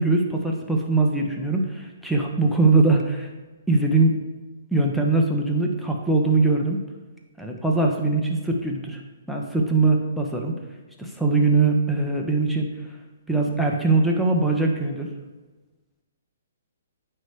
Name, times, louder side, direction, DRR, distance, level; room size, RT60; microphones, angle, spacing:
voice 1, 0.0-3.3 3.7-4.1 4.7-6.8 7.4-9.0 9.3-10.5 11.0-12.7 13.3-15.1, right 3 dB, ahead, 0 dB, 0.9 m, -21 dB
9.3 x 3.3 x 5.0 m, 1.2 s
hypercardioid pair, 140°, 0 cm